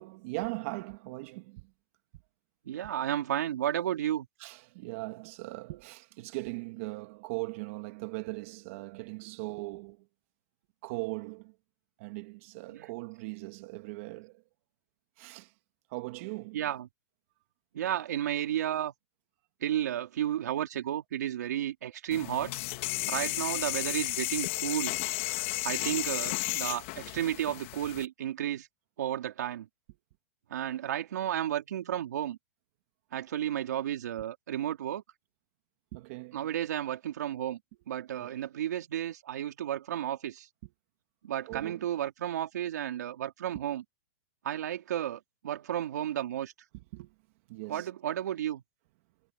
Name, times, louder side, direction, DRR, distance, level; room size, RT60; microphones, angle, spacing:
voice 1, 0.0-1.7 4.4-10.1 10.8-11.5 12.0-14.4 15.2-15.5 15.9-16.6 25.4-25.5 25.8-26.1 27.2-27.3 35.9-36.5 38.2-38.3 41.5-41.9 43.5-43.6 46.9-47.1 47.5-47.9, right 24 dB, 50° right, 2.0 m, -39 dB
voice 2, 2.7-4.3 12.7-12.9 16.5-16.9 17.7-18.9 19.6-22.5 23.1-25.0 25.6-28.7 29.0-29.7 30.5-32.4 33.1-35.0 36.3-37.6 37.9-40.5 41.2-43.8 44.4-46.5 47.7-48.6, right 11 dB, 75° right, 3.5 m, -32 dB
sound 1, 22.1-28.0, left 23 dB, 45° left, 2.9 m, -33 dB
hypercardioid pair, 145°, 9 cm